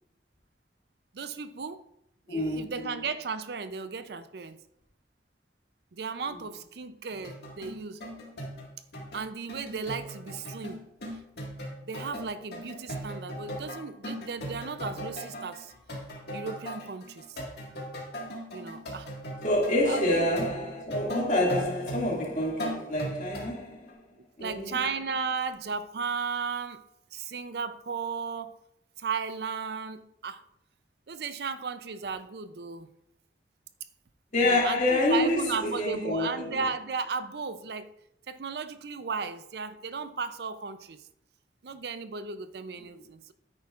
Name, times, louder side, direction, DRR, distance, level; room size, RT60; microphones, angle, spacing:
voice 1, 1.1-1.8 2.3-4.6 5.9-8.0 9.1-10.9 11.8-15.7 16.3-17.4 18.5-19.1 19.8-20.2 24.2-26.8 27.1-28.6 29.0-30.4 31.1-32.9 34.4-37.9 38.3-41.0 41.6-43.3, right 5 dB, 65° right, 0.5 m, -35 dB
voice 2, 2.3-3.0 19.4-24.0 24.4-24.8 34.3-36.7, left 1 dB, 45° left, 2.2 m, -27 dB
sound 1, 7.2-23.5 23.9-24.0, equal, 65° left, 1.8 m, -39 dB
9.7 x 8.8 x 2.4 m
head